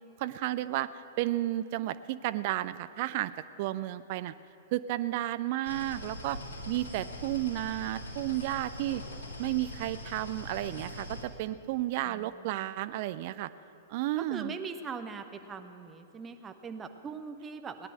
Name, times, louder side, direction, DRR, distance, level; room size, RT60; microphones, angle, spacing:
voice 1, 0.2-0.9 1.2-3.3 3.6-4.3 4.7-6.4 6.7-9.0 9.4-13.5 13.9-14.5, right 15 dB, 45° right, 14 dB, 0.5 m, -32 dB
sound 1, 5.6-11.2, left 1 dB, 60° left, 2.5 m, -42 dB
voice 2, 12.1-12.8 14.2-17.9, right 5 dB, 20° right, 7 dB, 0.9 m, -41 dB
18.0 x 10.0 x 7.6 m, 3.0 s
figure-of-eight pair, 105°, 0 cm